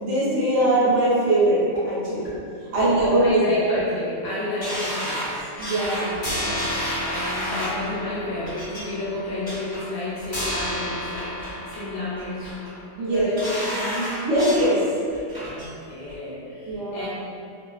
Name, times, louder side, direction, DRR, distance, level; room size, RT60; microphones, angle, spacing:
voice 1, 0.0-2.3 2.7-3.4 5.6-6.2 13.0-13.6 14.2-14.8 16.7-17.1, right 1 dB, 70° right, -8 dB, 1.0 m, -21 dB
sound 1, 1.3-1.4 1.8-1.9 2.3-2.4 2.8-2.9 3.3-3.4 3.8-3.9 4.3-4.4 4.8-4.9 5.3-5.4 5.8-5.9 6.2-12.9, equal, 40° left, 0.7 m, -33 dB
voice 2, 3.2-5.5 6.1-12.5 13.0-14.2 15.5-17.1, left 2 dB, 75° left, -8 dB, 0.9 m, -31 dB
sound 2, 4.6-7.8 8.4-8.8 9.2-9.8 10.2-10.7 11.1-11.8 12.2-12.7 13.1-14.7 15.1-15.7 16.1-16.2, equal, 25° right, 0.5 m, -32 dB
2.5 x 2.4 x 2.3 m, 2.5 s
omnidirectional pair, 1.4 m